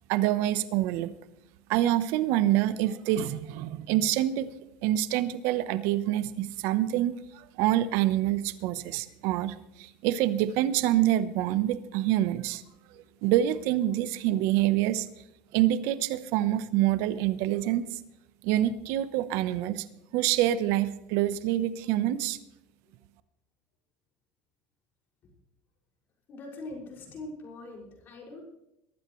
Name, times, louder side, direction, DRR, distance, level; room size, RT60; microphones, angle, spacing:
voice 1, 0.1-1.1 1.7-4.5 4.8-12.6 13.2-15.1 15.5-18.0 18.4-19.8 20.1-22.4, right 13 dB, 65° right, 14 dB, 1.0 m, -26 dB
voice 2, 26.3-28.4, left 2 dB, 45° left, 0 dB, 6.1 m, -42 dB
22.5 x 12.5 x 3.2 m, 0.86 s
supercardioid pair, 115°, 5 cm